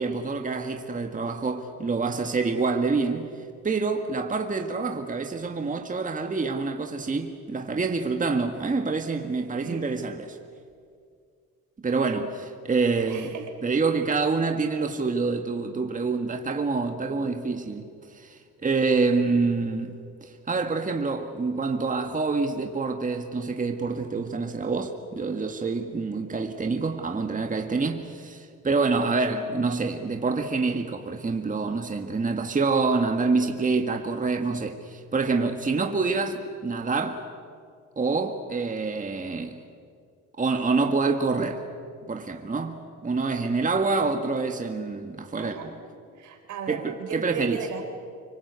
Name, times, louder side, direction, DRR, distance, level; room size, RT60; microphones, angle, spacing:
voice 1, 0.0-3.3 3.6-10.4 11.8-13.4 13.6-37.3 38.0-39.6 40.4-41.6 42.1-45.8 46.7-47.7, right 4 dB, 25° right, 1.8 m, -27 dB
voice 2, 9.6-9.9 13.1-13.4 36.1-36.2 45.4-45.7 46.2-47.8, right 6 dB, 75° right, 3.9 m, -36 dB
25.0 x 24.5 x 8.3 m
cardioid pair, 90°, 30 cm